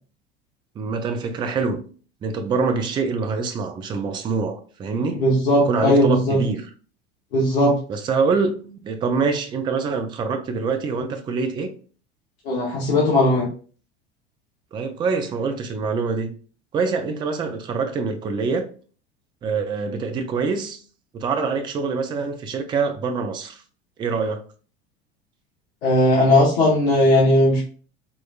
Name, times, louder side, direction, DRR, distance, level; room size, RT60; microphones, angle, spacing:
voice 1, 0.8-1.8 2.2-5.2 5.7-6.7 7.9-11.7 14.7-16.3 16.7-18.7 19.4-20.8 21.1-23.6 24.0-24.4, right 4 dB, 15° right, 0.3 m, -25 dB
voice 2, 5.1-6.4 7.3-7.8 12.4-13.5 25.8-27.6, left 1 dB, 65° left, 1.0 m, -17 dB
3.1 x 3.0 x 2.3 m
figure-of-eight pair, 75°, 33 cm